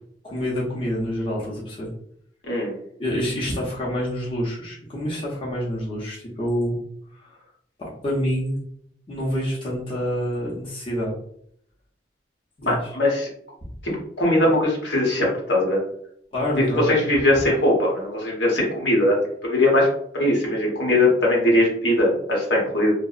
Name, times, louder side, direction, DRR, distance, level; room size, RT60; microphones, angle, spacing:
voice 1, 0.2-1.9 3.0-6.8 7.1-7.3 7.8-8.6 9.1-11.1 12.6-12.9 13.6-13.7 16.3-16.9, equal, 30° left, -6 dB, 0.6 m, -27 dB
voice 2, 12.7-13.3 13.8-13.9 14.2-15.8 16.8-19.2 19.4-19.9 20.1-22.9, left 1 dB, 75° left, -2 dB, 0.9 m, -20 dB
2.7 x 2.0 x 2.4 m, 0.69 s
head